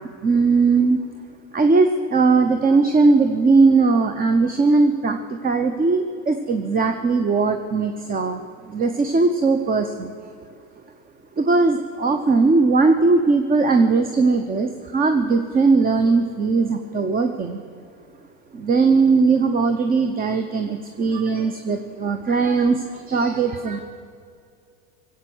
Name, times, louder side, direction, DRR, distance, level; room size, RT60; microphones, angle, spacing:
voice 1, 0.2-1.0 1.5-8.4 8.7-10.3 11.4-17.6 18.5-23.8, right 4 dB, 25° right, 8 dB, 0.9 m, -19 dB
20.5 x 8.2 x 8.0 m, 2.4 s
supercardioid pair, 110°, 34 cm